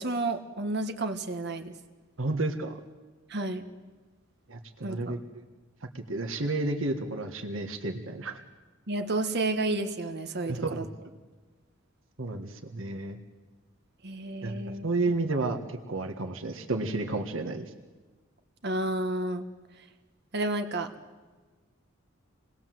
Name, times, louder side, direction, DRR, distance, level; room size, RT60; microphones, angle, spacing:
voice 1, 0.0-1.7 3.3-3.6 4.8-5.2 8.9-10.8 14.0-14.9 18.6-19.5 20.3-20.9, right 2 dB, 55° right, 7 dB, 1.7 m, -31 dB
voice 2, 2.2-2.7 4.5-5.4 6.1-8.4 10.4-10.9 12.2-13.2 14.4-14.5 14.8-17.7, right 2 dB, 75° right, 5 dB, 1.7 m, -31 dB
27.5 x 20.0 x 7.7 m, 1.3 s
head